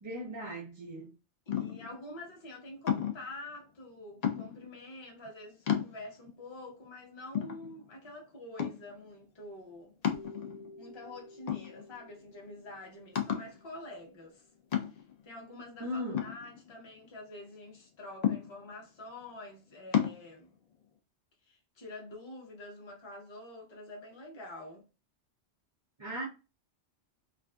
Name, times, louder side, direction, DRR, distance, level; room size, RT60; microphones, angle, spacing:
voice 1, 0.0-1.2 15.8-16.3 26.0-26.3, equal, 45° right, 0.3 m, -38 dB
sound 1, 1.5-2.0 2.9-3.3 4.2-4.7 5.3-5.4 5.7-6.3 6.8-6.9 7.3-8.1 8.6-9.0 10.0-10.8 11.5-12.1 12.4-12.5 13.2-13.6 14.7-15.2 16.1-17.0 18.2-18.8 19.9-20.2, left 9 dB, 65° left, 0.4 m, -32 dB
voice 2, 1.5-10.0 10.8-14.5 14.9-20.5 21.5-24.9, left 1 dB, 30° left, 0.6 m, -47 dB
sound 2, 10.1-14.1, left 2 dB, 85° left, 0.9 m, -53 dB
2.4 x 2.3 x 2.2 m
omnidirectional pair, 1.2 m